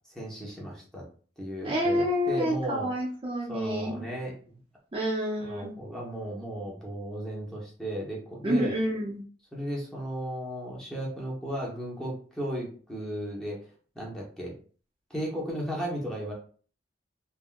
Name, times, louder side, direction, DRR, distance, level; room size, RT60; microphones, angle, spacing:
voice 1, 0.1-1.0 1.4-2.9 3.5-4.6 5.4-8.7 9.5-13.6 13.9-14.5 15.1-16.3, equal, 5° left, -4 dB, 0.9 m, -35 dB
voice 2, 1.6-4.0 4.9-5.8 8.4-9.2, equal, 30° right, -4 dB, 0.6 m, -28 dB
3.5 x 2.2 x 2.2 m, 0.42 s
head